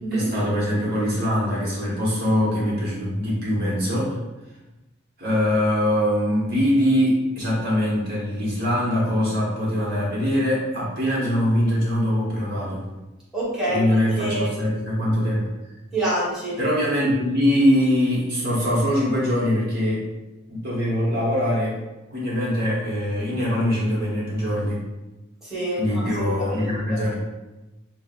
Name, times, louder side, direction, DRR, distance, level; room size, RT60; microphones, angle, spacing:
voice 1, 0.1-4.1 5.2-12.8 13.7-15.4 16.6-20.0 20.5-21.8 22.1-24.8 25.8-27.2, equal, 50° right, -6 dB, 1.1 m, -22 dB
voice 2, 13.3-13.8 14.2-14.5 15.9-16.6 25.4-27.0, right 1 dB, 5° right, -9 dB, 1.2 m, -27 dB
5.8 x 2.0 x 2.5 m, 1.0 s
head